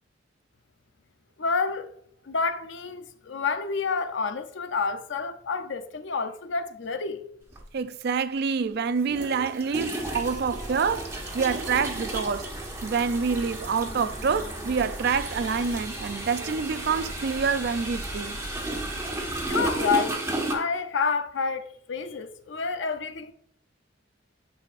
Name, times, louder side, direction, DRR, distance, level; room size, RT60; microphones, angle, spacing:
voice 1, 1.4-1.9 2.2-7.2 19.5-23.3, left 4 dB, 65° left, 0.6 m, -29 dB
sound 1, 7.5-7.6 9.0-20.5, right 2 dB, 15° right, 1.3 m, -34 dB
voice 2, 7.7-12.5 12.8-18.4, right 5 dB, 55° right, 0.4 m, -27 dB
sound 2, 10.0-19.9, equal, 20° left, 1.9 m, -40 dB
9.7 x 5.0 x 2.5 m
head